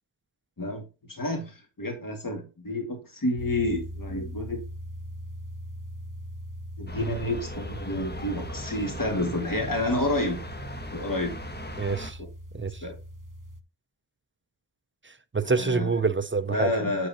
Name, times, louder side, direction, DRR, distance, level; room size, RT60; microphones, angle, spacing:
voice 1, 0.6-4.6 6.8-10.4 10.9-11.4 12.8-12.9 15.4-15.9 16.5-17.1, left 1 dB, 45° left, 2.2 m, -29 dB
sound 1, 3.4-13.6, equal, 40° right, 1.0 m, -40 dB
sound 2, 6.9-12.1, equal, 20° left, 1.4 m, -39 dB
voice 2, 11.8-12.2 12.5-12.8 15.1-16.7, right 4 dB, 25° right, 0.6 m, -27 dB
8.5 x 7.7 x 2.9 m
wide cardioid pair, 80°, 47 cm